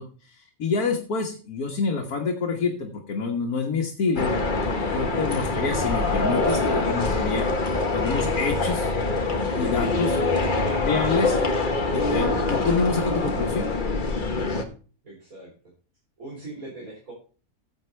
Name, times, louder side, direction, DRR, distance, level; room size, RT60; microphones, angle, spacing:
voice 1, 0.0-4.3 4.9-7.5 7.9-8.9 9.6-10.2 10.8-11.4 11.9-13.7, left 4 dB, 75° left, 1 dB, 1.9 m, -27 dB
sound 1, 4.2-14.6, left 3 dB, 35° left, 1.3 m, -24 dB
voice 2, 5.4-5.7 10.6-10.9 15.0-15.5 16.2-17.1, right 2 dB, 65° right, -4 dB, 4.1 m, -40 dB
14.5 x 7.8 x 3.3 m, 0.38 s
omnidirectional pair, 1.6 m